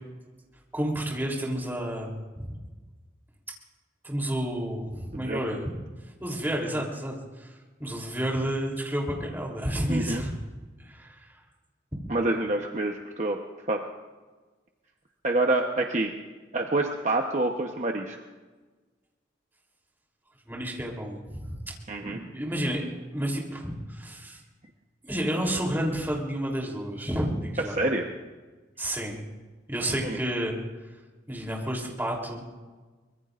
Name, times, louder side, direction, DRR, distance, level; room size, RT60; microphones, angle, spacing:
voice 1, 0.7-2.5 4.0-5.6 6.2-10.3 10.8-11.4 20.4-21.6 22.0-22.8 23.1-24.4 25.0-27.8 28.8-29.2 29.7-30.6 31.3-32.4, right 1 dB, 10° right, -1 dB, 3.3 m, -30 dB
voice 2, 9.9-10.2 12.1-13.4 13.7-13.8 15.2-16.1 16.5-18.2 21.9-22.2 27.7-28.1 30.0-30.2, right 2 dB, 40° right, 2 dB, 1.0 m, -27 dB
24.5 x 21.5 x 2.6 m, 1.3 s
head